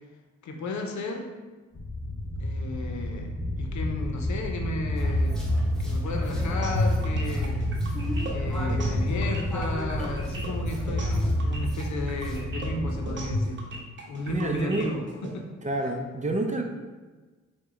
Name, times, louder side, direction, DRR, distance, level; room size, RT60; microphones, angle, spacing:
voice 1, 0.4-1.3 2.4-5.4 5.8-7.6 8.3-13.6 14.1-15.5, left 2 dB, 75° left, 3 dB, 0.7 m, -34 dB
sound 1, 1.7-13.1, equal, 25° left, 1.0 m, -29 dB
sound 2, 5.0-12.4, equal, ahead, 1.0 m, -41 dB
sound 3, 6.6-15.3, equal, 40° right, 0.9 m, -34 dB
voice 2, 14.3-14.9 15.6-16.6, right 2 dB, 25° right, 3 dB, 0.5 m, -28 dB
4.7 x 2.3 x 3.6 m, 1.3 s
supercardioid pair, 50°, 29 cm